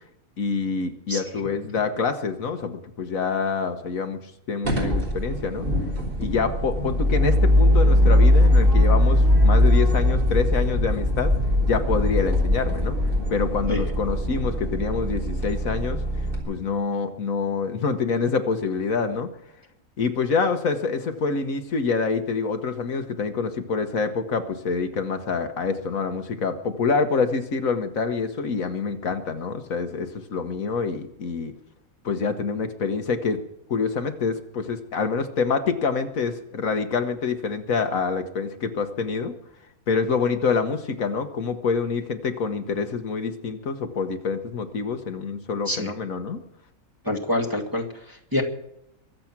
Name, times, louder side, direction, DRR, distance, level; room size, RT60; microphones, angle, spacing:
voice 1, 0.4-4.2 4.5-5.7 6.2-11.3 11.7-13.0 13.3-16.0 16.4-19.3 20.0-31.5 32.0-33.4 33.7-39.3 39.9-46.4, left 5 dB, 70° left, 7 dB, 1.6 m, -26 dB
sound 1, 4.6-16.4, left 1 dB, 35° right, 3.7 m, -20 dB
voice 2, 47.0-48.4, left 1 dB, 15° right, 2 dB, 2.2 m, -26 dB
23.0 x 7.9 x 6.0 m, 0.80 s
omnidirectional pair, 1.5 m